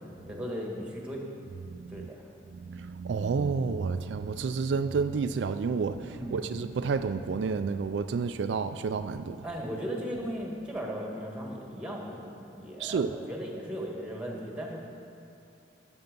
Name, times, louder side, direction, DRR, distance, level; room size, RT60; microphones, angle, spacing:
voice 1, 0.3-1.2 1.9-2.2 6.1-6.6 9.4-14.8, equal, 5° right, -1 dB, 1.6 m, -37 dB
voice 2, 1.7-2.1 2.5-9.4 12.8-13.1, right 5 dB, 70° right, 10 dB, 0.3 m, -30 dB
13.5 x 7.0 x 5.3 m, 2.6 s
head